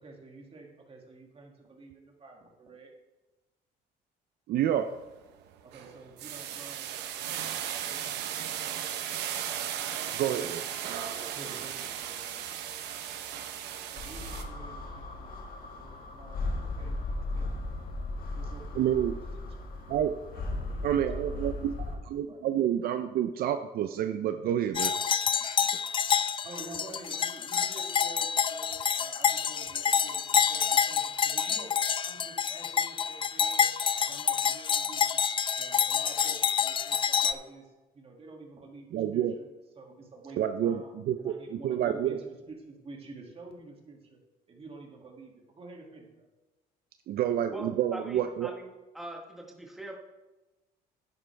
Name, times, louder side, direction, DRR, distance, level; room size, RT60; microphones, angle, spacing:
voice 1, 0.0-2.9 5.6-9.0 9.8-15.4 15.7-17.7 18.3-20.0 20.3-22.0 22.3-22.4 26.4-31.7 32.0-33.6 34.0-35.2 35.6-37.7 37.9-39.5 39.8-44.2 44.5-46.3, right 3 dB, 35° right, 1 dB, 2.3 m, -50 dB
voice 2, 4.5-4.9 10.2-10.6 18.7-19.1 19.9-20.1 20.8-21.8 22.1-24.9 25.4-25.6 36.2-36.3 38.9-39.4 40.4-42.2 47.1-48.5, right 10 dB, 65° right, 8 dB, 0.5 m, -29 dB
sound 1, 4.7-5.0 5.4-14.4, right 10 dB, 85° right, 1.0 m, -36 dB
sound 2, 14.0-22.0, left 2 dB, 60° left, 1.7 m, -36 dB
sound 3, 24.7-37.3, left 7 dB, 30° left, 0.4 m, -28 dB
voice 3, 47.5-48.7 48.9-49.9, right 1 dB, ahead, 0 dB, 1.3 m, -42 dB
11.0 x 9.2 x 3.4 m, 1.1 s
cardioid pair, 110°, 17 cm